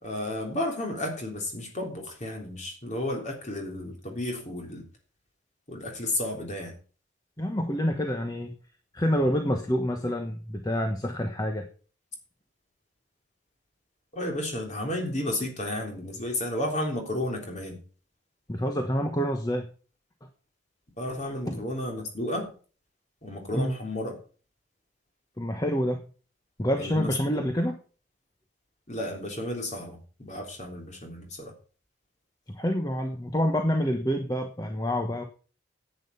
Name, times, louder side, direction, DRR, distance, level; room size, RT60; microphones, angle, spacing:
voice 1, 0.0-4.9 5.7-6.7 14.1-17.8 21.0-22.5 23.2-24.2 26.8-27.5 28.9-31.5, left 1 dB, 35° left, 2 dB, 3.4 m, -32 dB
voice 2, 7.4-8.5 8.9-11.7 18.5-19.7 21.5-21.6 23.5-23.7 25.4-26.0 26.6-27.7 32.5-35.2, equal, 20° left, 4 dB, 1.1 m, -27 dB
10.0 x 8.9 x 5.7 m, 0.38 s
head